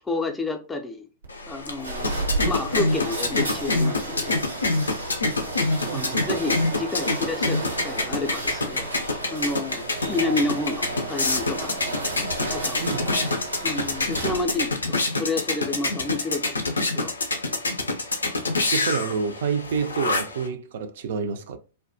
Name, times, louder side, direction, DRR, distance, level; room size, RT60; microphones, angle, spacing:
voice 1, 0.1-1.1 1.5-4.4 5.9-8.9 9.3-11.8 12.5-13.2 13.6-16.5 16.8-17.1, left 2 dB, 15° left, 0.4 m, -30 dB
sound 1, 1.2-14.7, right 2 dB, 85° right, 0.7 m, -33 dB
sound 2, 1.3-20.5, left 2 dB, 80° left, 0.4 m, -27 dB
voice 2, 5.9-6.3 12.8-13.1 18.7-21.6, right 5 dB, 55° right, 0.3 m, -28 dB
2.3 x 2.1 x 2.5 m
figure-of-eight pair, 100°, 0 cm